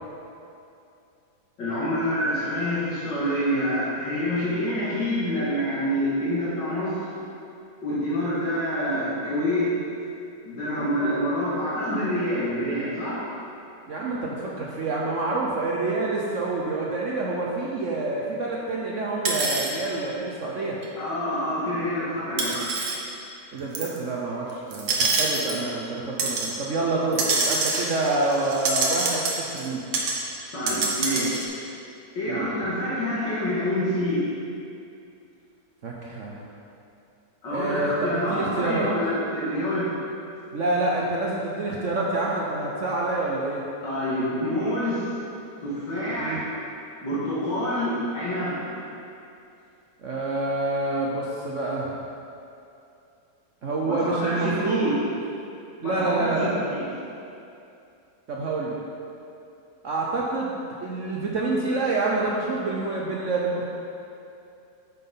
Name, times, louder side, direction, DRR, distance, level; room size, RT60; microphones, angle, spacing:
voice 1, 1.6-7.1 7.8-9.7 10.4-13.3 21.0-22.7 30.5-31.4 32.2-34.3 37.4-39.9 43.8-45.2 45.6-46.5 47.0-48.8 53.9-55.0 55.8-56.9, equal, 80° left, -9 dB, 2.4 m, -27 dB
voice 2, 13.9-20.8 23.5-29.8 32.3-32.5 35.8-36.4 37.5-38.9 40.5-43.6 46.2-46.4 50.0-52.0 53.6-54.9 55.8-56.5 58.3-58.8 59.8-60.5 60.8-63.6, right 2 dB, 55° right, -4 dB, 0.9 m, -27 dB
sound 1, 19.2-19.7 20.8-20.9 22.4-23.0 23.7-24.0 24.7-25.6 26.2-26.5 27.1-29.7 29.9-30.2 30.4-31.4, right 3 dB, 75° right, 1.6 m, -26 dB
9.2 x 5.9 x 3.8 m, 2.6 s
omnidirectional pair, 1.9 m